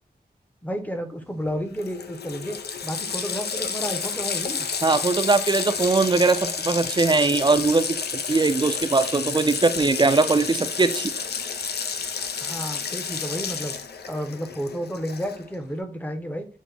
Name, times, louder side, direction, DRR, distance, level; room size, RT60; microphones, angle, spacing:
voice 1, 0.6-2.6 2.8-4.7 12.4-13.7 14.0-16.5, equal, 10° left, 7 dB, 0.6 m, -31 dB
Water tap faucet, 1.5-1.6 1.8-15.5, left 6 dB, 85° left, 0.4 m, -30 dB
voice 2, 4.8-11.1, right 3 dB, 30° right, 10 dB, 0.4 m, -21 dB
6.1 x 2.1 x 3.3 m, 0.41 s
wide cardioid pair, 70°, 16 cm